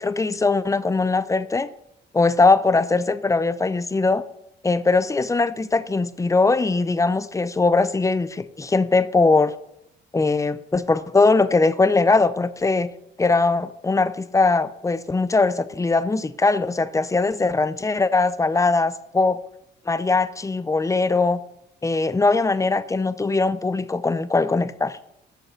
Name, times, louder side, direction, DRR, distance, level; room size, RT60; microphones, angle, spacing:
voice 1, 0.0-1.7 2.1-4.2 4.6-9.5 10.1-12.9 13.2-19.4 19.9-21.4 21.8-25.0, left 3 dB, 15° left, 15 dB, 0.6 m, -20 dB
8.0 x 6.6 x 6.0 m, 0.80 s
cardioid pair, 90°, 20 cm